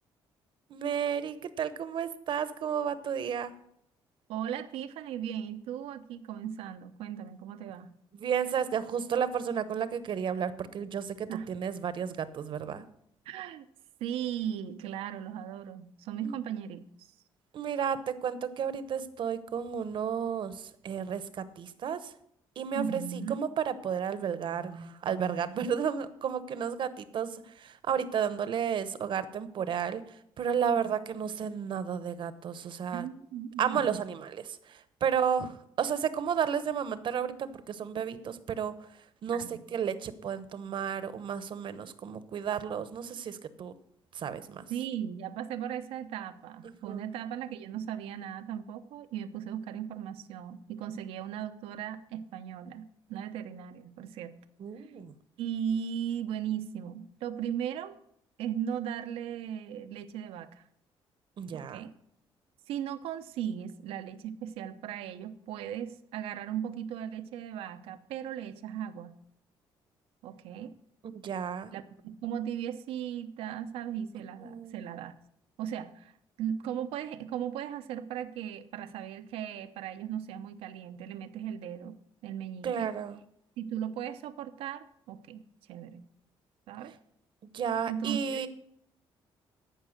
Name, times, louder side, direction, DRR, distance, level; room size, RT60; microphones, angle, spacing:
voice 1, 0.7-3.5 8.1-12.9 16.2-16.3 17.5-22.1 22.6-33.1 33.6-38.9 39.2-43.7 44.1-44.7 46.8-47.0 54.6-55.1 61.4-61.8 71.0-71.7 74.4-74.7 82.6-83.2 87.5-88.5, right 7 dB, 60° right, 13 dB, 0.9 m, -32 dB
voice 2, 4.3-7.9 11.3-11.5 13.3-13.6 14.0-16.9 22.8-23.4 32.9-34.0 39.3-39.6 44.7-54.4 54.8-54.9 55.4-58.0 58.4-60.6 61.5-61.9 62.7-69.2 70.2-70.7 71.7-75.1 75.6-76.1 76.4-82.0 82.2-82.9 83.6-85.4 85.7-86.1 86.7-87.0 87.9-88.5, right 9 dB, 90° right, 10 dB, 0.8 m, -37 dB
14.0 x 5.5 x 6.5 m, 0.71 s
cardioid pair, 95°, 10 cm